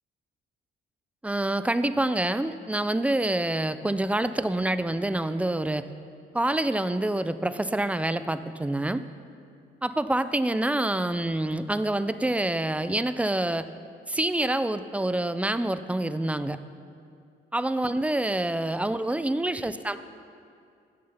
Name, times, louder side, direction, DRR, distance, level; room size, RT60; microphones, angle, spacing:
voice 1, 1.2-5.8 6.3-9.0 9.8-13.7 14.1-16.6 17.5-20.0, right 1 dB, 5° right, 12 dB, 0.4 m, -27 dB
16.0 x 6.5 x 5.7 m, 2.4 s
cardioid pair, 90°, 20 cm